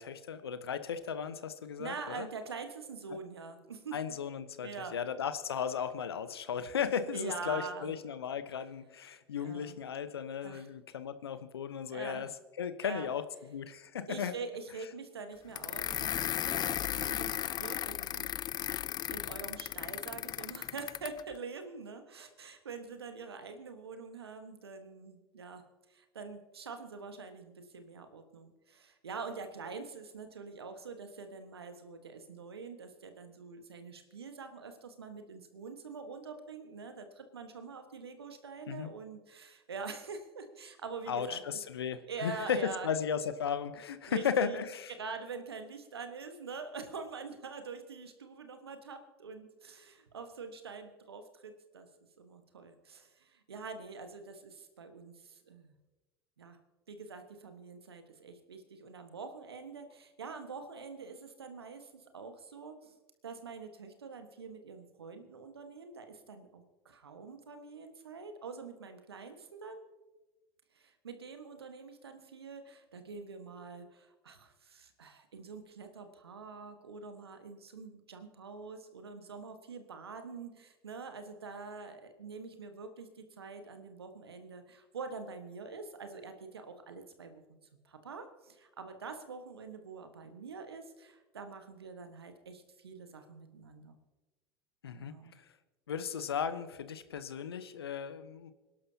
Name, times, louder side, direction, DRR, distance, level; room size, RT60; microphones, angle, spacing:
voice 1, 0.0-2.3 3.9-12.3 12.6-14.3 38.7-38.9 41.1-44.9 94.8-95.5 95.9-98.5, left 7 dB, 80° left, 12 dB, 0.8 m, -36 dB
voice 2, 1.8-4.0 4.6-5.0 7.1-7.9 9.4-9.8 10.4-10.7 11.9-12.3 12.8-13.1 14.1-18.3 18.7-18.8 19.1-25.6 25.9-41.4 42.1-42.9 44.1-44.6 44.9-51.9 52.2-55.7 56.4-56.6 56.9-63.0 63.2-69.9 70.7-87.4 87.8-93.9 94.9-95.3, right 4 dB, 85° right, 7 dB, 1.4 m, -45 dB
sound 1, 15.5-21.2, left 11 dB, 35° left, 0.3 m, -35 dB
26.5 x 11.5 x 2.8 m, 1.1 s
figure-of-eight pair, 70°, 13 cm